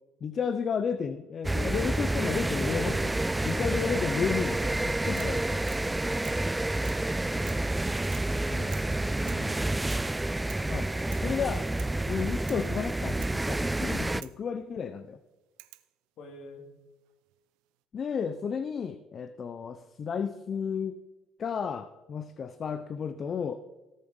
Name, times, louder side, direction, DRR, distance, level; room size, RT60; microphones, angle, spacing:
voice 1, 0.2-3.1 3.4-5.6 8.5-8.7 10.7-10.9 11.2-11.7 12.1-15.2 17.9-21.0 21.4-23.6, left 6 dB, 40° left, 12 dB, 0.7 m, -32 dB
sound 1, 1.4-14.2, right 2 dB, 10° right, 0.3 m, -29 dB
sound 2, 2.5-5.8, equal, 80° left, 4.6 m, -45 dB
sound 3, 5.2-5.4 5.7-5.9 6.2-6.5 6.9-7.1 7.5-7.7 8.1-8.4 8.7-8.9 9.3-9.5 9.9-10.1 10.5-10.7 11.1-11.3 11.8-12.0 12.5-12.7 13.2-13.4 14.2-14.4 15.6-15.9 17.1-17.6, right 19 dB, 90° right, 0.7 m, -50 dB
voice 2, 10.8-11.1 16.2-16.7, left 3 dB, 65° left, 3 dB, 3.1 m, -49 dB
18.0 x 7.0 x 5.4 m, 1.1 s
cardioid pair, 100°, 0 cm